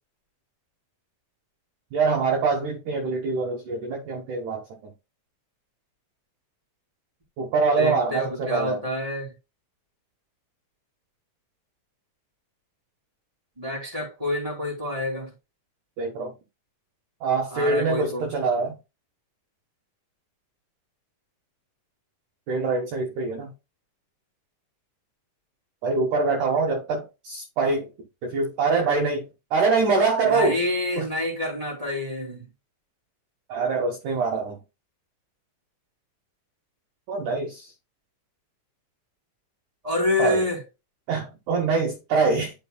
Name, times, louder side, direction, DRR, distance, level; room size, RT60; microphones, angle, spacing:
voice 1, 1.9-4.6 7.4-8.8 16.0-16.3 17.2-18.8 22.5-23.5 25.8-27.9 28.2-29.2 29.5-30.6 31.0-31.1 33.5-34.6 37.1-37.7 40.2-40.4 41.1-42.5, right 4 dB, 65° right, 2.3 m, -24 dB
voice 2, 7.8-9.3 13.6-15.3 17.5-18.3 30.2-32.5 39.8-40.6, left 1 dB, 10° right, 2.3 m, -27 dB
10.5 x 5.2 x 2.2 m
omnidirectional pair, 4.1 m